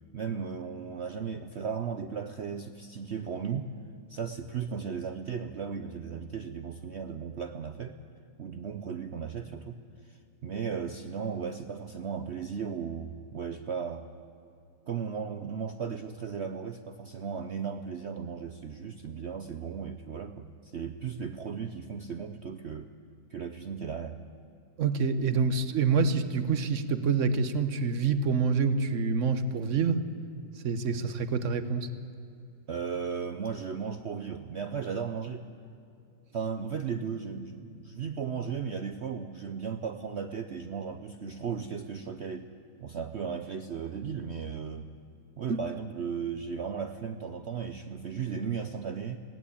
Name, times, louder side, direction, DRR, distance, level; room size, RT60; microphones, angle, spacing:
voice 1, 0.1-3.7 4.1-8.0 8.4-14.1 14.9-22.9 23.3-24.2 32.7-35.4 36.3-42.5 42.8-44.9 45.4-49.2, right 6 dB, 65° right, 8 dB, 0.6 m, -36 dB
voice 2, 24.8-30.0 30.6-31.9 45.5-45.6, right 5 dB, 50° right, 11 dB, 1.1 m, -27 dB
19.5 x 17.0 x 8.5 m, 2.6 s
omnidirectional pair, 2.0 m